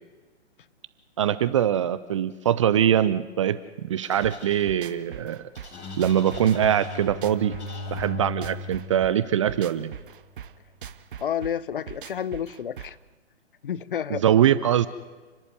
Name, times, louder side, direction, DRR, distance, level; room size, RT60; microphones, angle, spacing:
voice 1, 1.2-5.5 6.0-7.6 7.9-9.9 14.1-14.9, right 10 dB, 25° right, 14 dB, 0.6 m, -23 dB
sound 1, 4.0-4.6 5.6-7.1 7.6-8.0, left 3 dB, 65° left, 5.2 m, -46 dB
sound 2, 4.2-13.1, right 9 dB, 45° right, 0.9 m, -42 dB
Bowed string instrument, 5.7-10.1, left 2 dB, 15° left, 1.9 m, -37 dB
voice 2, 11.2-13.0 13.6-14.2, left 9 dB, 50° left, 18 dB, 0.9 m, -30 dB
29.5 x 11.0 x 9.7 m, 1.3 s
figure-of-eight pair, 125°, 35 cm